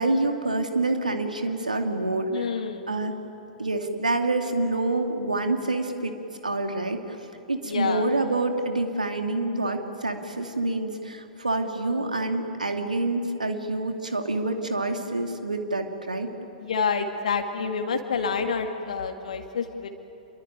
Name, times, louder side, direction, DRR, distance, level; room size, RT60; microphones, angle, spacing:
voice 1, 0.0-2.5 2.9-3.2 3.6-6.1 6.4-7.0 7.5-16.3, right 2 dB, 80° right, 5 dB, 2.5 m, -27 dB
voice 2, 2.3-2.9 7.6-8.1 16.6-19.9, left 5 dB, 65° left, 5 dB, 2.0 m, -28 dB
27.0 x 23.0 x 9.1 m, 2.9 s
figure-of-eight pair, 100°, 4 cm